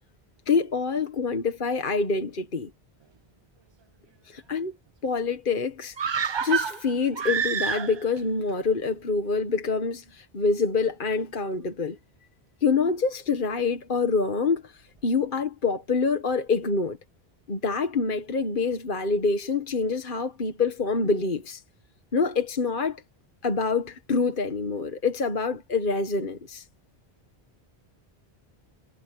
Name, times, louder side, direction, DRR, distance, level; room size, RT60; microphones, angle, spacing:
voice 1, 0.5-2.7 4.3-4.7 5.0-6.0 6.4-12.0 12.6-17.0 17.5-21.6 22.1-23.0 23.4-26.7, left 4 dB, 55° left, 1.6 m, -26 dB
sound 1, 6.0-8.2 8.5-8.6, right 7 dB, 45° right, 0.3 m, -27 dB
omnidirectional pair, 1.1 m